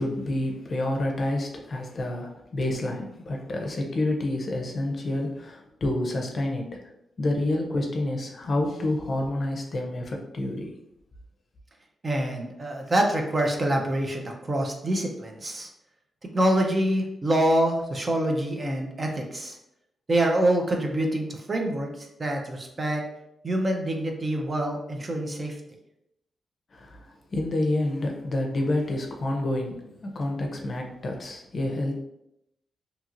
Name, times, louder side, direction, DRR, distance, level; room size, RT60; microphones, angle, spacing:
voice 1, 0.0-6.9 7.2-10.7 26.7-32.0, left 1 dB, 45° left, 1 dB, 0.5 m, -28 dB
voice 2, 12.0-15.7 16.2-19.6 20.1-23.0 23.4-25.6, right 1 dB, 35° right, 2 dB, 0.5 m, -26 dB
2.8 x 2.8 x 2.5 m, 0.82 s
cardioid pair, 100°, 0 cm